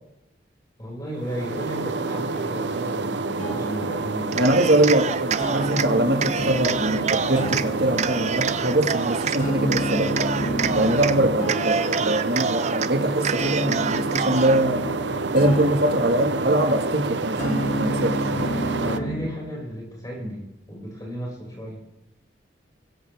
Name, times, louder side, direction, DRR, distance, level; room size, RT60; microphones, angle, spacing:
voice 1, 0.8-4.6 15.8-15.9 18.2-21.8, equal, 20° left, -3 dB, 6.0 m, -34 dB
sound 1, 1.1-19.0, right 3 dB, 80° right, 0.8 m, -29 dB
sound 2, 3.4-19.4, equal, 45° left, 2.4 m, -32 dB
Cheering, 4.3-5.9 6.2-7.7 8.0-9.4 9.7-11.2 11.4-12.9 13.2-14.6, right 6 dB, 40° right, 0.5 m, -27 dB
voice 2, 4.4-10.2 10.7-14.9 15.3-18.2, right 1 dB, 60° right, 5 dB, 1.8 m, -23 dB
21.5 x 16.0 x 3.5 m, 0.89 s
head